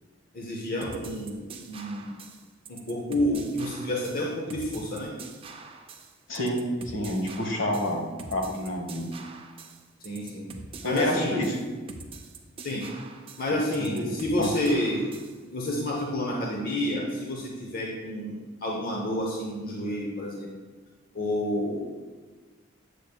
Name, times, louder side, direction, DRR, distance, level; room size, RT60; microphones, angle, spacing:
voice 1, 0.3-2.1 2.7-5.1 10.0-10.5 10.8-11.4 12.6-12.9 13.4-15.1 15.5-20.5 21.1-21.8, left 1 dB, 50° left, -2 dB, 0.8 m, -29 dB
sound 1, 0.8-15.4, right 4 dB, 30° right, 0.5 m, -44 dB
voice 2, 6.3-8.0 8.3-9.1 10.8-11.6 13.8-14.1 14.4-14.5, left 1 dB, 70° left, 1 dB, 1.2 m, -28 dB
8.6 x 6.5 x 2.3 m, 1.4 s
head